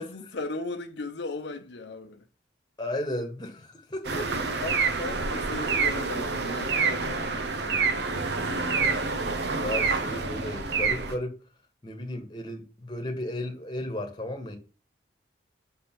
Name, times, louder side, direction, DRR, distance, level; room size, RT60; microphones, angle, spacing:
voice 1, 0.0-2.2 4.6-7.9, left 3 dB, 70° left, 0.7 m, -37 dB
voice 2, 2.8-4.6 9.5-11.4 11.8-14.6, left 1 dB, 25° left, 1.3 m, -34 dB
sound 1, 4.0-11.2, right 4 dB, 65° right, 0.7 m, -27 dB
6.5 x 3.3 x 5.8 m
head